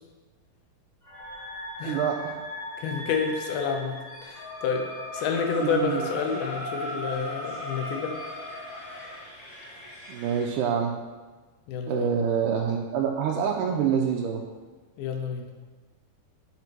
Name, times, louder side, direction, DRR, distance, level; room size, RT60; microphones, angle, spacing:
sound 1, 1.0-9.2, left 1 dB, 20° left, 1.3 m, -37 dB
voice 1, 1.9-2.4 5.6-6.1 10.1-11.0 11.9-14.4, right 7 dB, 85° right, 1 dB, 1.9 m, -26 dB
voice 2, 2.8-4.9 5.1-8.1 11.7-12.1 15.0-15.5, left 6 dB, 85° left, 3 dB, 2.8 m, -29 dB
sound 2, 5.1-10.5, left 1 dB, 40° left, 2.5 m, -46 dB
6.9 x 5.1 x 6.1 m, 1.3 s
omnidirectional pair, 4.3 m